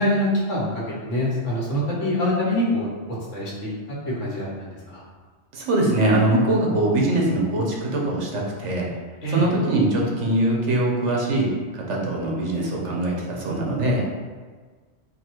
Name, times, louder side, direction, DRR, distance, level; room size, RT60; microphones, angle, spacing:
voice 1, 0.0-2.9 3.3-3.7 4.0-5.0 9.2-9.5, left 1 dB, 85° left, -5 dB, 1.5 m, -24 dB
voice 2, 5.5-8.9 9.3-11.5 11.9-14.0, right 1 dB, 80° right, -2 dB, 1.2 m, -22 dB
3.9 x 2.4 x 4.4 m, 1.5 s
omnidirectional pair, 1.2 m